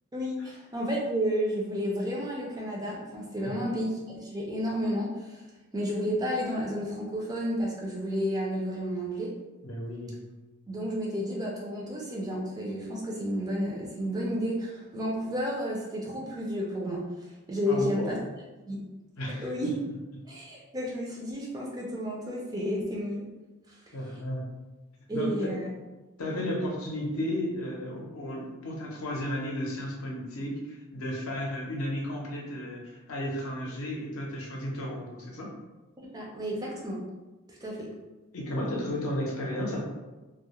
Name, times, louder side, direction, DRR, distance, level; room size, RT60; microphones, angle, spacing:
voice 1, 0.1-5.4 5.7-9.3 10.7-17.0 17.5-18.2 18.7-18.8 19.4-19.8 20.2-23.2 23.7-23.8 25.1-25.7 26.3-26.4 36.0-37.0 37.5-37.9, equal, 15° right, -3 dB, 0.4 m, -31 dB
voice 2, 9.6-10.1 17.7-18.2 19.2-19.7 23.9-24.4 25.1-25.5 26.2-35.5 38.3-39.8, left 1 dB, 70° left, -1 dB, 0.6 m, -33 dB
2.3 x 2.0 x 2.8 m, 1.1 s
head